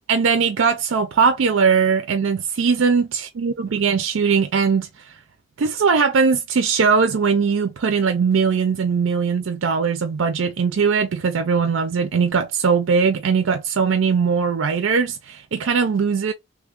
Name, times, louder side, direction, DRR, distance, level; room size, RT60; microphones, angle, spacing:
voice 1, 0.1-4.9 5.6-16.3, right 5 dB, 80° right, 0.4 m, -20 dB
3.1 x 2.2 x 3.6 m
head